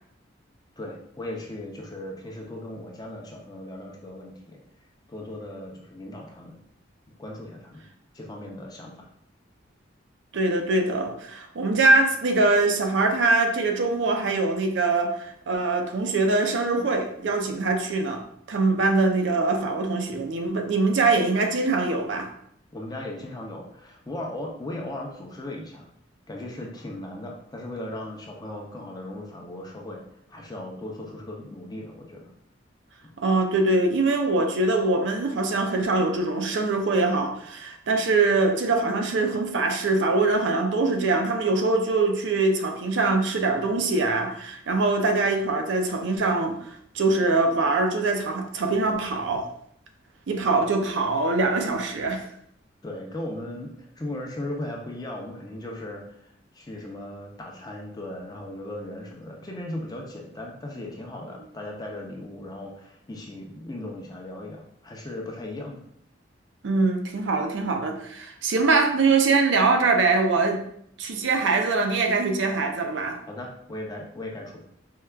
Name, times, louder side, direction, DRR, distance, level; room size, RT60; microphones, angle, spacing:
voice 1, 0.8-4.6 5.1-6.6 7.2-7.9 8.1-9.1 22.7-25.9 26.3-30.0 30.3-32.2 52.8-65.8 73.3-74.6, left 1 dB, 20° left, 0 dB, 0.5 m, -37 dB
voice 2, 10.3-18.2 18.5-22.3 33.2-49.5 50.3-52.2 66.6-70.6 71.0-73.2, right 3 dB, 65° right, 4 dB, 0.4 m, -23 dB
4.5 x 2.3 x 2.2 m, 0.71 s
head